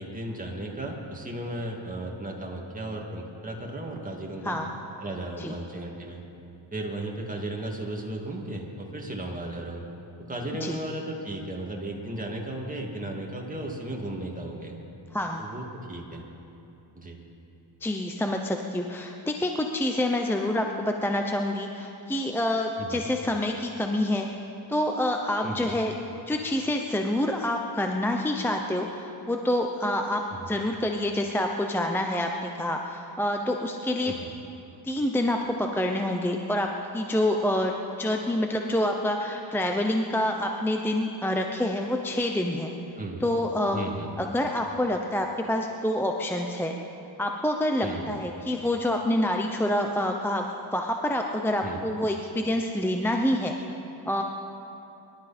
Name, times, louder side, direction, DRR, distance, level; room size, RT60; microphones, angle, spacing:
voice 1, 0.0-4.6 5.0-6.2 6.7-9.8 10.3-14.8 15.4-16.2 17.0-17.2 22.8-23.0 25.4-25.7 30.3-30.5 34.0-34.3 42.9-43.2 43.7-44.1 47.8-48.1 51.6-51.8, right 1 dB, 15° right, -1 dB, 2.4 m, -35 dB
voice 2, 15.1-15.4 17.8-24.3 24.7-25.9 26.3-34.1 34.8-37.7 38.0-42.7 43.2-43.9 44.2-46.7 47.2-53.6 54.1-54.2, left 1 dB, 5° left, 2 dB, 0.7 m, -27 dB
24.0 x 12.5 x 4.4 m, 2.9 s
cardioid pair, 110°, 48 cm